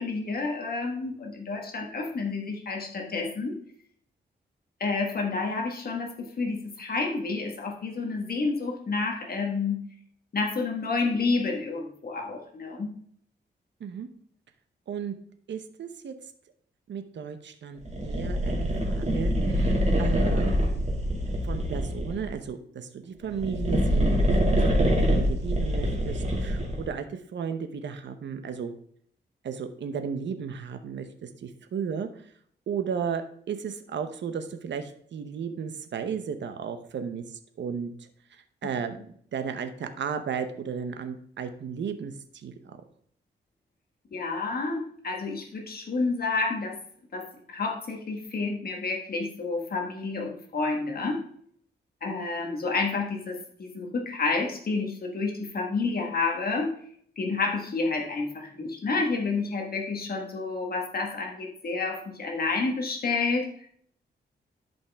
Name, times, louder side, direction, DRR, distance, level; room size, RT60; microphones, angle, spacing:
voice 1, 0.0-3.6 4.8-9.8 10.3-12.9 44.1-46.8 47.1-51.2 52.0-56.7 57.2-63.6, left 3 dB, 55° left, 2 dB, 1.6 m, -29 dB
voice 2, 15.5-16.1 16.9-20.5 21.4-28.7 29.4-32.1 32.7-37.2 37.6-38.1 38.6-42.8, right 6 dB, 75° right, 8 dB, 0.9 m, -34 dB
sound 1, 17.9-22.3 23.2-26.9, equal, 35° right, 2.3 m, -25 dB
12.0 x 5.4 x 3.5 m, 0.62 s
wide cardioid pair, 120°, 19 cm